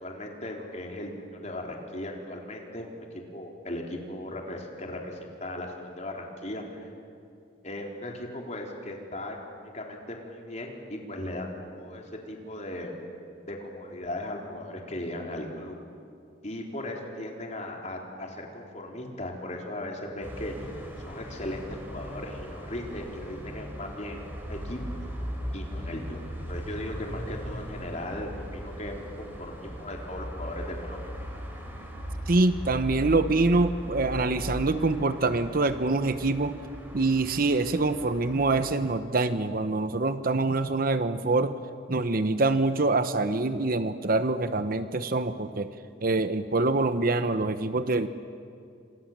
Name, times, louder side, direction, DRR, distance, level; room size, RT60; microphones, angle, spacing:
voice 1, 0.0-6.9 7.6-12.9 13.5-15.8 16.4-24.8 25.5-26.2 26.5-31.0, left 1 dB, 40° left, 0 dB, 4.0 m, -37 dB
sound 1, 20.2-39.0, equal, 10° right, 4.7 m, -39 dB
voice 2, 32.3-36.6 36.9-41.5 41.9-45.7 46.0-48.1, right 3 dB, 50° right, 11 dB, 0.9 m, -25 dB
28.0 x 27.0 x 7.5 m, 2.4 s
head